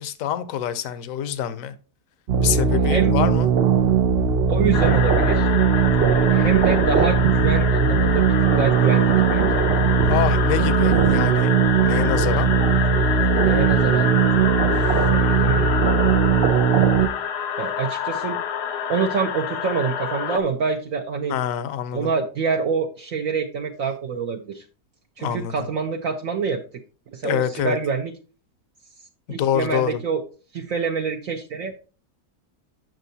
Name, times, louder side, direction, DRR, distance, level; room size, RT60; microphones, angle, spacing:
voice 1, 0.0-1.7 2.4-3.5 10.1-12.5 21.3-22.1 25.2-25.5 27.2-27.8 29.4-30.0, left 10 dB, 65° left, 1.0 m, -25 dB
sound 1, 2.3-17.1, right 6 dB, 85° right, 0.5 m, -19 dB
voice 2, 2.5-3.2 4.5-5.5 6.3-8.3 8.6-9.6 13.4-15.7 17.6-18.4 18.9-21.3 21.9-24.6 25.2-26.6 27.1-28.1 29.3-30.2 30.5-31.7, right 5 dB, 65° right, 1.0 m, -26 dB
sound 2, 4.7-20.4, left 8 dB, 90° left, 1.3 m, -27 dB
9.0 x 6.4 x 2.7 m
omnidirectional pair, 1.7 m